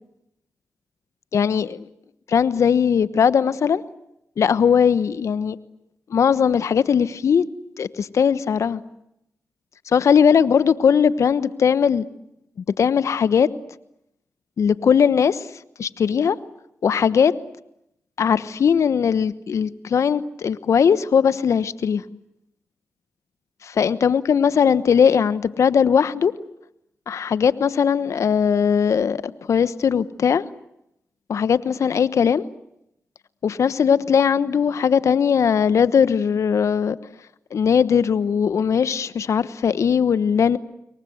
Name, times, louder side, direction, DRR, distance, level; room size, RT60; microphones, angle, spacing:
voice 1, 1.3-1.9 2.3-3.8 4.4-5.6 6.1-7.4 7.8-8.8 9.9-12.0 12.8-13.5 14.6-15.5 15.8-16.4 16.8-17.3 18.2-22.0 23.6-26.3 27.1-30.4 31.3-32.4 33.4-37.0 37.5-40.6, left 7 dB, 75° left, 16 dB, 1.1 m, -19 dB
27.5 x 23.0 x 8.0 m, 0.80 s
cardioid pair, 45°, 5 cm